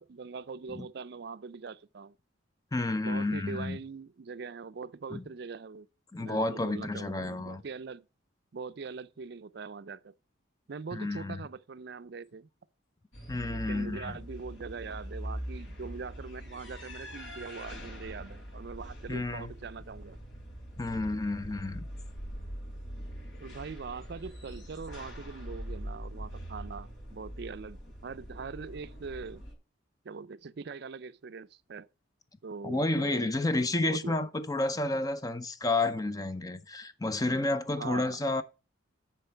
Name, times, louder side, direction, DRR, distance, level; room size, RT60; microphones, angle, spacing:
voice 1, 0.0-2.2 3.0-5.9 6.2-8.0 8.5-10.1 10.7-12.5 13.4-20.2 23.4-29.4 30.0-31.9 32.4-33.3 33.9-34.3 37.7-38.2, right 5 dB, 55° right, 0.4 m, -42 dB
voice 2, 2.7-3.8 5.1-5.2 6.1-7.6 10.9-11.4 13.3-14.2 19.1-19.5 20.8-21.8 32.6-38.4, left 2 dB, 20° left, 0.6 m, -30 dB
sound 1, 13.1-29.5, equal, 80° left, 3.3 m, -43 dB
9.8 x 4.5 x 5.6 m
head